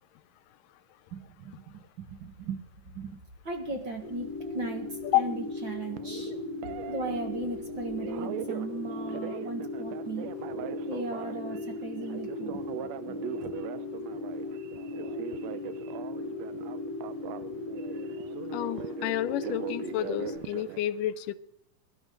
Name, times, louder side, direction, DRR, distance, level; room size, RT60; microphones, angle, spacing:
voice 1, 1.1-3.2 3.4-4.3 4.5-4.9 5.1-6.3 6.9-10.3 10.9-13.5, right 3 dB, 45° right, 3 dB, 1.9 m, -37 dB
sound 1, 2.1-8.2, equal, 25° right, 4.3 m, -56 dB
Telephone, 3.7-20.8, right 11 dB, 75° right, 1.6 m, -42 dB
sound 2, 4.0-20.4, left 3 dB, 50° left, 1.2 m, -37 dB
voice 2, 18.5-21.3, left 13 dB, 85° left, 15 dB, 2.3 m, -29 dB
22.5 x 12.0 x 3.9 m, 0.75 s
omnidirectional pair, 3.7 m